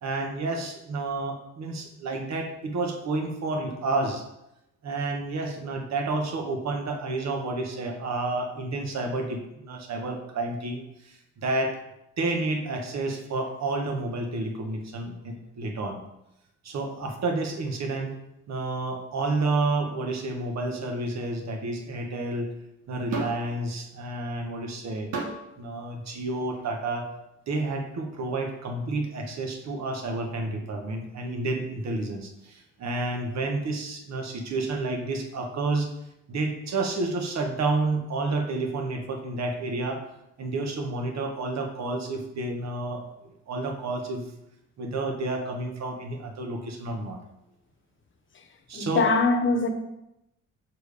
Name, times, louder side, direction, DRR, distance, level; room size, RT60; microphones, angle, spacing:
voice 1, 0.0-4.2 4.8-11.8 12.2-16.0 16.6-18.1 18.5-22.5 22.9-25.1 25.6-27.1 27.5-35.9 36.3-40.0 40.4-43.1 43.5-44.2 44.8-47.2 48.7-49.1, right 2 dB, 60° right, 3 dB, 1.4 m, -30 dB
sound 1, 23.1-23.5 25.1-25.5 26.5-26.7, right 4 dB, 85° right, 1.5 m, -31 dB
voice 2, 48.7-49.7, left 3 dB, 40° left, 4 dB, 1.1 m, -22 dB
7.0 x 4.5 x 5.0 m, 0.87 s
cardioid pair, 90°, 30 cm